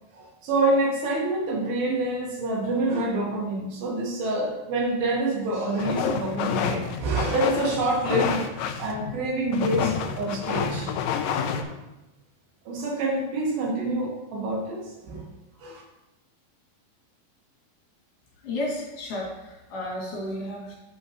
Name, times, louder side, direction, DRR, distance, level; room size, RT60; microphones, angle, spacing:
voice 1, 0.1-10.9 12.7-15.3 15.6-15.8, right 2 dB, 85° right, -2 dB, 3.4 m, -27 dB
sound 1, 5.8-11.6, left 7 dB, 80° left, 2.1 m, -29 dB
voice 2, 18.4-20.8, left 1 dB, 65° left, -5 dB, 3.9 m, -32 dB
9.0 x 6.9 x 3.1 m, 0.98 s
omnidirectional pair, 4.1 m